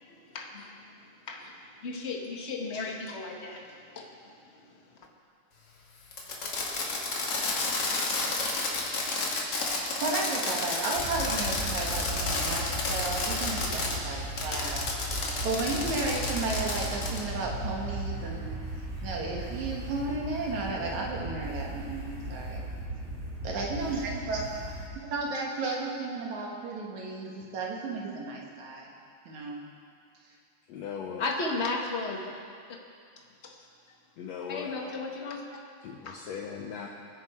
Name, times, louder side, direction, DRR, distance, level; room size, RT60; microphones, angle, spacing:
voice 1, 0.0-0.8 1.3-5.0 31.2-32.3 33.4-33.6 34.5-35.4 36.0-36.2, left 3 dB, 35° left, 1 dB, 1.0 m, -35 dB
Fireworks, 6.1-14.0 14.4-17.2, left 3 dB, 55° left, 2.7 m, -31 dB
voice 2, 9.8-14.8 15.1-18.5 19.0-22.6 23.4-24.5 25.0-28.9 29.3-29.6, right 3 dB, 75° right, -2 dB, 3.0 m, -33 dB
sound 1, 11.0-24.8, right 1 dB, 25° right, 2.8 m, -37 dB
voice 3, 30.7-31.2 34.2-34.8 35.8-36.9, left 7 dB, 70° left, 0 dB, 2.0 m, -38 dB
25.0 x 10.0 x 4.4 m, 2.3 s
omnidirectional pair, 3.4 m